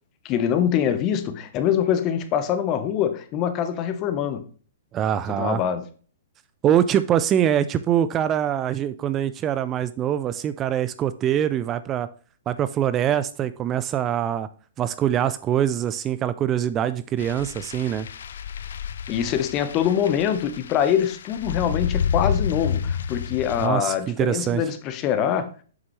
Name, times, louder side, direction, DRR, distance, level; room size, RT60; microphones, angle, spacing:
voice 1, 0.2-4.4 5.3-5.8 19.1-25.5, left 9 dB, 35° left, 0.9 m, -24 dB
voice 2, 4.9-5.6 6.6-12.1 12.5-14.5 14.8-18.1 23.6-24.6, right 10 dB, 25° right, 0.3 m, -23 dB
sound 1, 17.2-23.7, left 7 dB, 70° left, 0.4 m, -29 dB
7.6 x 6.0 x 3.1 m
hypercardioid pair, 125°, 0 cm